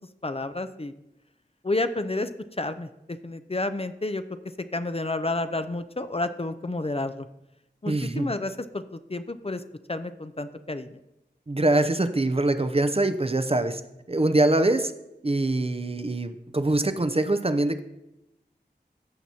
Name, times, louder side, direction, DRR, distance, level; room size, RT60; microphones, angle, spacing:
voice 1, 0.2-0.9 1.6-2.3 2.6-4.2 4.7-7.3 7.8-9.6 9.9-11.0, left 2 dB, 35° left, 10 dB, 0.5 m, -30 dB
voice 2, 7.9-8.3 11.5-13.8 14.1-14.9 15.2-17.8, right 2 dB, 35° right, 10 dB, 0.5 m, -24 dB
15.0 x 5.9 x 2.8 m, 0.91 s
wide cardioid pair, 40°, 18 cm